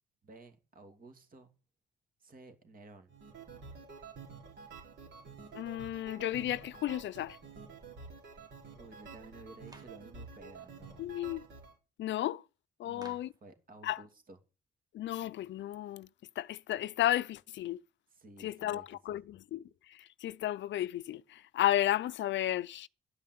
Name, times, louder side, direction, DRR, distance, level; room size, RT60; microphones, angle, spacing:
voice 1, 0.2-1.5 2.2-3.1 8.7-11.1 12.8-14.4 18.1-19.2, right 2 dB, 45° right, 2.8 m, -54 dB
sound 1, 3.1-11.7, right 5 dB, 65° right, 4.3 m, -50 dB
voice 2, 5.5-7.4 11.0-11.4 12.0-12.4 12.8-13.3 13.8-14.0 14.9-16.1 16.4-17.8 18.4-19.6 20.2-22.9, left 13 dB, 70° left, 0.5 m, -33 dB
Clapping, 9.7-10.0 13.0-13.4, right 2 dB, 20° right, 1.8 m, -55 dB
12.5 x 5.7 x 9.4 m
cardioid pair, 90°, 20 cm